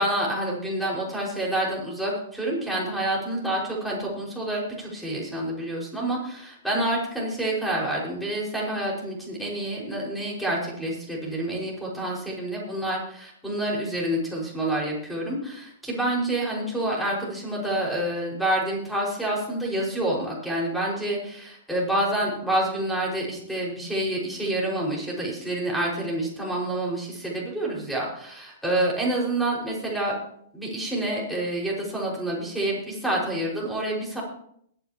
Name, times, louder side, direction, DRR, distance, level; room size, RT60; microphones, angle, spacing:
voice 1, 0.0-30.1 30.5-34.2, right 1 dB, ahead, -5 dB, 5.6 m, -28 dB
22.5 x 10.0 x 3.0 m, 0.68 s
figure-of-eight pair, 110°, 0 cm